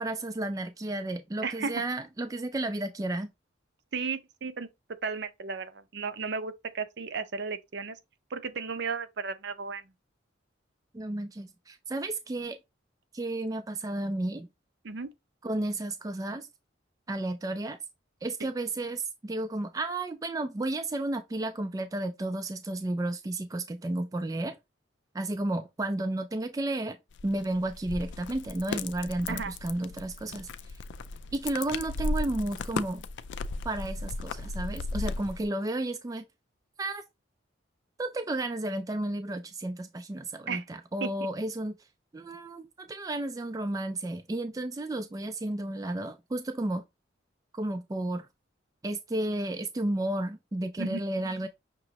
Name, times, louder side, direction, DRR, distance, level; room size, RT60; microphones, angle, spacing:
voice 1, 0.0-3.3 10.9-12.6 13.1-14.5 15.4-16.5 17.1-17.8 18.2-24.6 25.1-27.0 27.2-30.7 31.3-33.0 33.6-36.3 36.8-37.0 38.0-41.7 42.1-46.8 47.5-48.3 48.8-51.5, right 2 dB, 20° right, 0.3 m, -32 dB
voice 2, 1.4-1.7 3.9-4.7 5.0-8.0 8.3-9.9 14.8-15.1 29.3-29.5 40.5-40.6 41.0-41.1 50.8-51.0, right 5 dB, 60° right, 0.6 m, -34 dB
sound 1, 27.1-35.5, left 3 dB, 65° left, 0.4 m, -36 dB
6.0 x 3.0 x 2.8 m
head